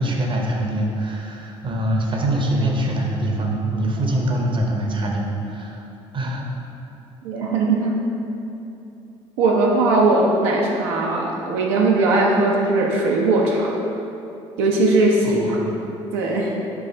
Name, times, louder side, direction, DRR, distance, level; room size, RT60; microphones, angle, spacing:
voice 1, 0.0-5.9 6.1-6.5 15.2-15.8, right 1 dB, 35° right, 0 dB, 0.7 m, -24 dB
voice 2, 7.2-8.0 9.4-13.7 14.6-15.6 16.1-16.5, right 2 dB, 75° right, -2 dB, 0.5 m, -19 dB
4.6 x 2.5 x 4.2 m, 2.8 s
hypercardioid pair, 60°, 15 cm